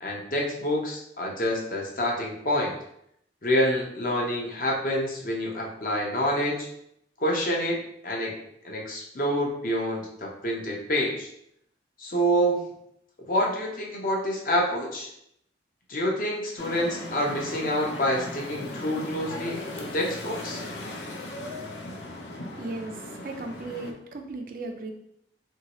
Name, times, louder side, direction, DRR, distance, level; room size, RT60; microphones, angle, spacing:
voice 1, 0.0-2.8 3.4-6.7 7.2-8.4 8.6-11.3 12.0-12.6 13.3-15.1 15.9-20.6, equal, 50° left, -2 dB, 0.7 m, -27 dB
sound 1, 16.6-23.9, left 2 dB, 85° left, 0.5 m, -38 dB
voice 2, 22.6-24.9, right 2 dB, 50° right, 3 dB, 0.4 m, -36 dB
3.1 x 2.7 x 2.9 m, 0.73 s
head